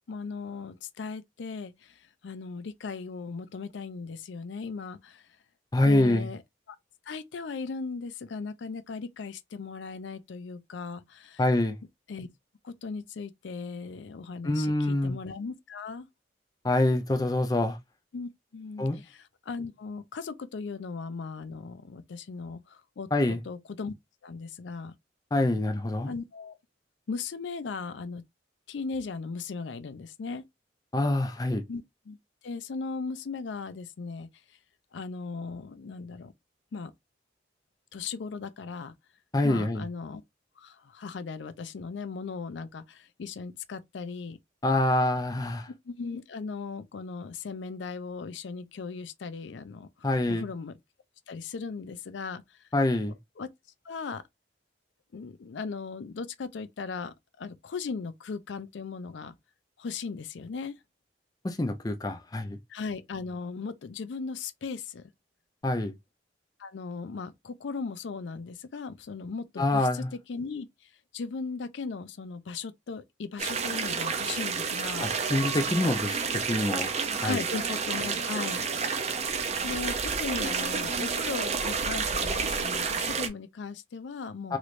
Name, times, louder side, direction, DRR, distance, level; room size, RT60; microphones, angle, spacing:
voice 1, 0.1-5.2 5.8-6.4 6.7-6.8 7.1-11.4 12.1-12.3 12.6-16.1 18.1-23.1 23.4-23.9 24.2-24.9 26.0-26.6 27.1-28.2 28.7-30.4 31.7-32.2 32.4-34.3 34.9-36.3 36.7-36.9 37.9-38.9 39.4-40.2 40.6-44.4 45.9-50.7 51.3-52.7 53.4-53.5 53.8-54.2 55.1-59.4 59.8-60.8 62.7-65.1 66.6-75.1 77.1-78.7 79.6-84.6, left 4 dB, 80° left, 0.4 m, -37 dB
voice 2, 5.7-6.3 11.4-11.7 14.4-15.2 16.6-17.8 18.8-19.0 23.1-23.4 25.3-26.1 30.9-31.6 39.3-39.8 44.6-45.7 50.0-50.5 52.7-53.1 61.4-62.6 65.6-65.9 69.6-70.1 75.0-76.2 76.5-76.9 77.2-77.4 84.5-84.6, left 1 dB, 20° left, 0.5 m, -25 dB
sound 1, 73.4-83.3, right 5 dB, 35° right, 0.5 m, -30 dB
3.1 x 3.0 x 2.5 m
head